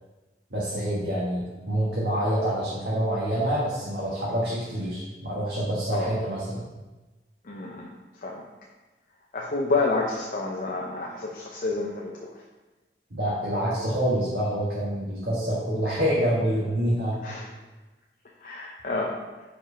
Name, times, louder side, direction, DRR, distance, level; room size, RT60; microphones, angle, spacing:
voice 1, 0.5-6.6 13.1-17.2, right 1 dB, 70° right, -7 dB, 1.4 m, -27 dB
voice 2, 7.4-8.5 9.3-12.4 17.2-17.5 18.4-19.2, left 3 dB, 50° left, -2 dB, 0.6 m, -29 dB
5.1 x 4.4 x 5.0 m, 1.2 s
head